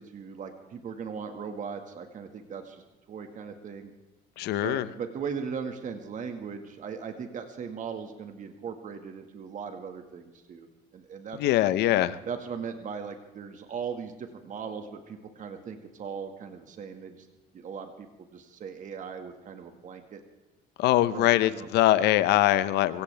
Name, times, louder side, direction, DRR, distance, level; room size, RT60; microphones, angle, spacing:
voice 1, 0.0-2.8 3.1-3.9 4.6-10.7 10.9-11.4 12.3-17.3 17.5-18.1 18.3-20.2 21.1-21.7, right 6 dB, 50° right, 6 dB, 1.9 m, -38 dB
voice 2, 4.4-4.9 11.4-12.2 20.8-23.0, left 14 dB, 85° left, 15 dB, 0.9 m, -23 dB
24.0 x 16.5 x 3.5 m, 1.1 s
cardioid pair, 110°, 17 cm